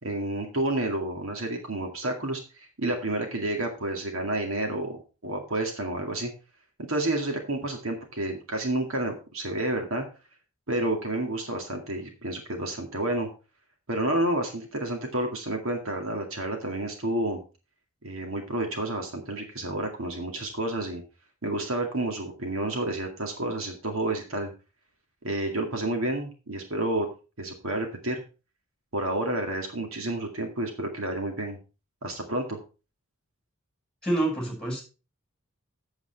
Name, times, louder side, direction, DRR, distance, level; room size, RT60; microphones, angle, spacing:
voice 1, 0.0-6.3 6.8-10.1 10.7-13.3 13.9-17.4 18.0-21.0 21.4-24.5 25.2-27.1 27.4-28.2 28.9-31.6 32.0-32.6, right 1 dB, 70° right, 3 dB, 2.1 m, -30 dB
voice 2, 34.0-34.8, right 1 dB, 5° left, 0 dB, 5.7 m, -27 dB
8.3 x 8.0 x 4.5 m, 0.33 s
head